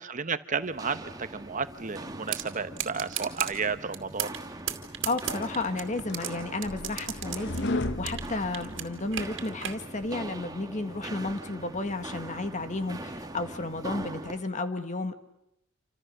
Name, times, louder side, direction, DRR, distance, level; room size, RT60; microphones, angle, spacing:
voice 1, 0.0-4.4 8.6-8.8, right 5 dB, 40° right, 11 dB, 1.0 m, -32 dB
Walk footsteps, 0.6-14.4, right 1 dB, 20° right, 1.5 m, -42 dB
sound 1, 2.3-2.4 2.8-3.5 3.9-4.4 4.7-6.3 6.6-8.3 8.5-9.8, right 11 dB, 65° right, 2.5 m, -33 dB
voice 2, 5.0-15.1, left 2 dB, 35° left, 8 dB, 1.8 m, -32 dB
sound 2, 5.6-9.3, left 2 dB, 60° left, 1.0 m, -35 dB
28.0 x 26.0 x 6.7 m, 0.80 s
head